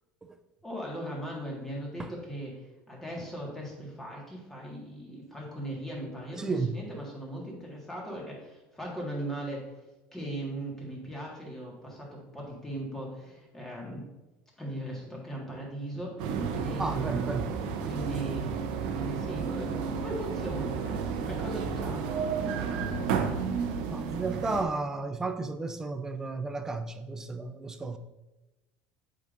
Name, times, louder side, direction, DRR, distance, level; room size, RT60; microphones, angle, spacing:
voice 1, 0.6-9.7 10.1-14.1 14.6-17.3 17.8-23.4, right 1 dB, 10° left, 1.7 m, -39 dB
voice 2, 6.4-6.8 16.8-17.8 23.9-28.0, right 3 dB, 10° right, 0.4 m, -33 dB
sound 1, 16.2-24.6, right 6 dB, 80° right, 0.7 m, -32 dB
8.1 x 5.1 x 2.6 m
cardioid pair, 150°, 5 cm